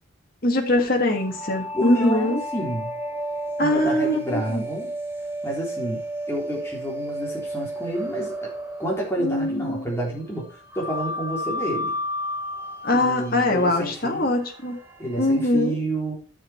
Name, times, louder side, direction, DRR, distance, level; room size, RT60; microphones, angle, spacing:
voice 1, 0.4-2.4 3.6-4.6 9.2-9.9 12.8-14.8 15.2-15.8, left 1 dB, 45° left, 2 dB, 2.0 m, -22 dB
sound 1, 1.1-9.8 10.7-15.5, equal, 10° right, 2.5 m, -32 dB
voice 2, 1.8-2.9 3.6-4.9 5.4-6.0 6.3-8.5 8.8-11.9 12.9-14.4 15.0-16.1, right 1 dB, 15° left, -3 dB, 3.6 m, -29 dB
9.9 x 7.7 x 4.5 m, 0.37 s
head